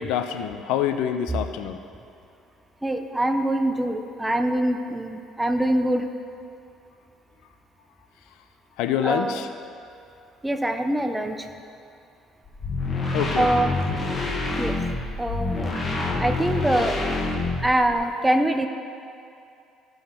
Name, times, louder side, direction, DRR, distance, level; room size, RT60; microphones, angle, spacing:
voice 1, 0.0-1.8 8.8-9.5 13.1-13.7, left 9 dB, 85° left, 8 dB, 0.5 m, -26 dB
voice 2, 2.8-6.0 9.0-9.4 10.4-11.4 13.4-13.8 14.6-14.8 15.2-15.7 16.2-17.2 17.6-18.7, right 1 dB, 5° right, 6 dB, 0.5 m, -24 dB
sound 1, 12.4-17.9, left 2 dB, 25° left, 1.3 m, -27 dB
14.0 x 5.6 x 4.4 m, 2.5 s
cardioid pair, 130°, 0 cm